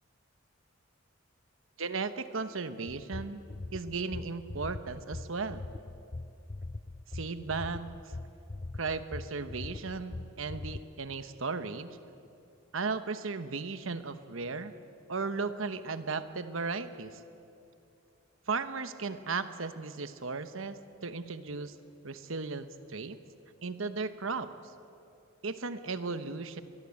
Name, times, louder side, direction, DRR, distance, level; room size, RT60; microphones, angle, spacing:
voice 1, 1.8-3.4 3.7-5.7 7.1-7.9 8.7-12.0 12.7-14.7 15.1-17.2 18.5-21.7 22.0-23.2 23.6-24.5 25.4-26.6, right 4 dB, 75° right, 11 dB, 1.1 m, -36 dB
sound 1, 2.9-10.8, left 2 dB, 25° left, 0.5 m, -41 dB
24.0 x 20.5 x 8.4 m, 2.7 s
head